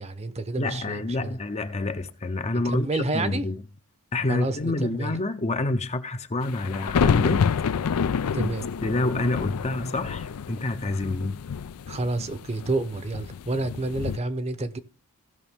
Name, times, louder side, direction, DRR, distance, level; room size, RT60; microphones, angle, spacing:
voice 1, 0.0-1.4 2.6-3.5 4.3-5.1 8.3-8.7 11.9-14.8, right 2 dB, 30° right, 0.8 m, -29 dB
voice 2, 0.6-3.6 4.1-7.5 8.4-8.5 8.8-11.4, left 2 dB, 30° left, 0.6 m, -28 dB
sound 1, 6.4-14.2, left 6 dB, 80° left, 0.4 m, -28 dB
16.0 x 5.9 x 3.6 m
head